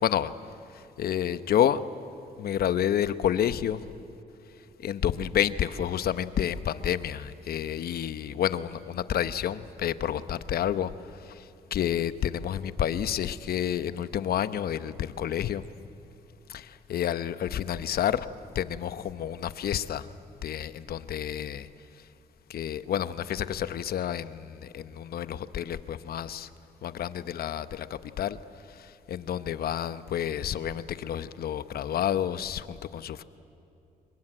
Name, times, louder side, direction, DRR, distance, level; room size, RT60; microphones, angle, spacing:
voice 1, 0.0-0.3 1.0-1.8 2.4-3.9 4.8-10.9 11.3-11.4 11.7-15.6 16.5-18.3 18.5-20.1 20.4-21.7 22.5-26.5 26.8-28.4 28.8-33.2, left 10 dB, 70° left, 13 dB, 0.9 m, -29 dB
27.0 x 23.0 x 9.1 m, 2.7 s
cardioid pair, 80°, 16 cm